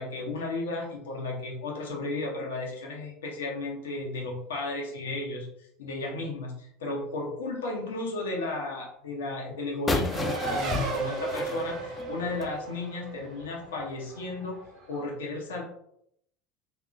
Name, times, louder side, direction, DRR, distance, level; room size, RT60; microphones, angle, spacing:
voice 1, 0.0-14.6 14.9-15.6, left 2 dB, 70° left, 0 dB, 0.6 m, -34 dB
sound 1, 9.9-12.6, left 3 dB, 20° left, 0.4 m, -32 dB
Race car auto racing, 10.1-15.0, right 3 dB, 45° right, 0.6 m, -35 dB
2.7 x 2.1 x 2.5 m, 0.73 s
figure-of-eight pair, 70°, 0 cm